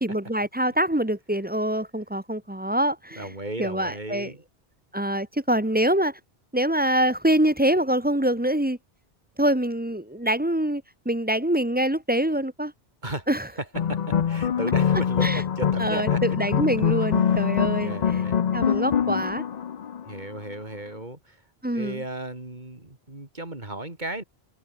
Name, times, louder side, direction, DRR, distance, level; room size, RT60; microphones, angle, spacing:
voice 1, 0.0-3.3 3.6-4.3 4.9-6.2 6.5-8.8 9.4-12.7 13.3-13.5 15.2-15.4 15.8-18.2 18.5-19.4 21.6-22.0, right 1 dB, 10° right, 1.1 m, -25 dB
voice 2, 3.2-4.4 13.0-13.3 13.6-16.2 17.2-17.5 17.8-18.4 19.1-19.2 20.1-21.4 21.7-24.2, right 2 dB, 45° right, 4.3 m, -35 dB
sound 1, 13.7-20.4, left 8 dB, 50° left, 0.7 m, -24 dB
omnidirectional pair, 1.1 m